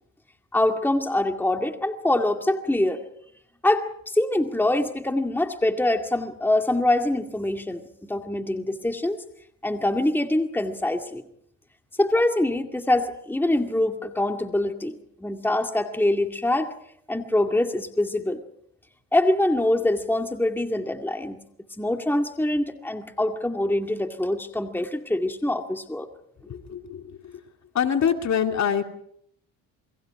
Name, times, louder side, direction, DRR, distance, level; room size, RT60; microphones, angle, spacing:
voice 1, 0.5-3.0 3.6-9.2 9.6-11.2 12.0-16.7 17.1-18.4 19.1-21.4 21.8-26.1, left 1 dB, 5° left, 5 dB, 2.2 m, -24 dB
voice 2, 26.5-27.4 27.7-28.8, left 8 dB, 45° left, 5 dB, 2.6 m, -25 dB
29.5 x 22.0 x 4.9 m, 0.68 s
supercardioid pair, 85°, 37 cm